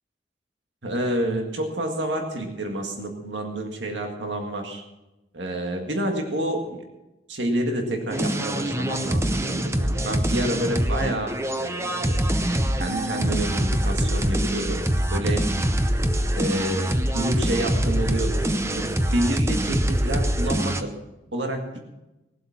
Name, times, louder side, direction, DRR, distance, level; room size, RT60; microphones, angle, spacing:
voice 1, 0.8-4.8 5.3-6.9 7.3-11.3 11.6-12.3 12.8-14.8 15.1-15.5 16.3-20.9 21.3-21.8, right 1 dB, 85° right, 3 dB, 1.8 m, -29 dB
sound 1, 8.1-20.8, right 1 dB, 15° right, 0.7 m, -24 dB
18.5 x 7.9 x 5.8 m, 0.97 s
head